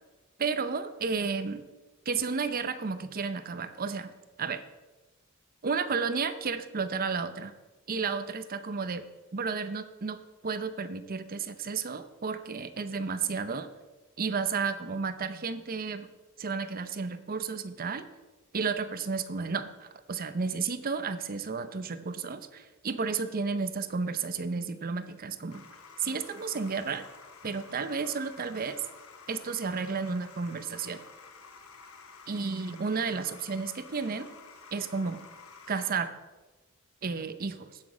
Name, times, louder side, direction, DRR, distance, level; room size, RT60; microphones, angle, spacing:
voice 1, 0.4-1.6 2.1-4.1 4.4-4.6 5.6-7.5 7.9-9.0 9.3-13.7 14.2-16.1 16.4-18.0 18.5-25.6 26.0-27.1 27.4-28.8 29.3-31.0 32.3-34.3 34.7-35.2 35.7-36.1 37.0-37.8, right 5 dB, 45° right, 11 dB, 0.6 m, -32 dB
sound 1, 25.5-35.9, left 5 dB, 80° left, 1.1 m, -51 dB
14.5 x 6.2 x 4.9 m, 1.2 s
head